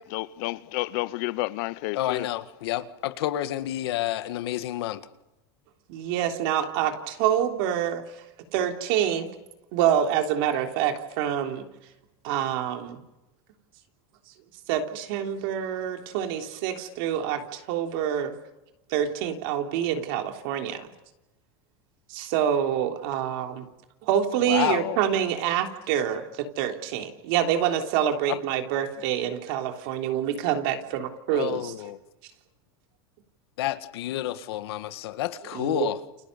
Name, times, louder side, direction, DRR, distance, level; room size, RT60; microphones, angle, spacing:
voice 1, 0.1-2.3, left 20 dB, 55° left, 0.9 m, -30 dB
voice 2, 1.9-5.0 24.5-25.0 28.3-28.4 31.3-32.0 33.6-36.0, left 13 dB, 85° left, 1.8 m, -29 dB
voice 3, 5.9-8.0 8.5-9.3 9.7-11.7 12.2-13.0 14.7-18.4 18.9-20.9 22.1-23.7 24.0-31.7 35.5-35.9, right 10 dB, 60° right, 3.5 m, -26 dB
29.5 x 28.0 x 6.9 m
supercardioid pair, 160°, 13 cm